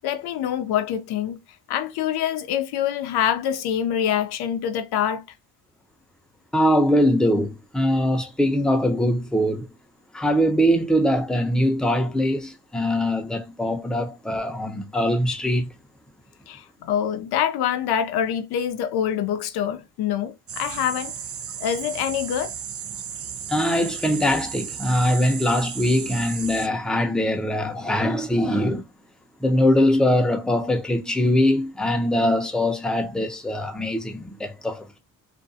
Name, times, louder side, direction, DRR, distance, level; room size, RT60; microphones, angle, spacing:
voice 1, 0.0-1.4 1.7-5.2 16.5-21.1 21.6-22.5, left 9 dB, 75° left, 0.5 m, -25 dB
voice 2, 6.5-9.7 10.1-15.7 23.5-28.8 29.4-35.0, equal, ahead, 0.7 m, -22 dB
sound 1, 20.5-26.7, right 8 dB, 40° right, 0.5 m, -34 dB
2.5 x 2.2 x 2.6 m
supercardioid pair, 60°, 39 cm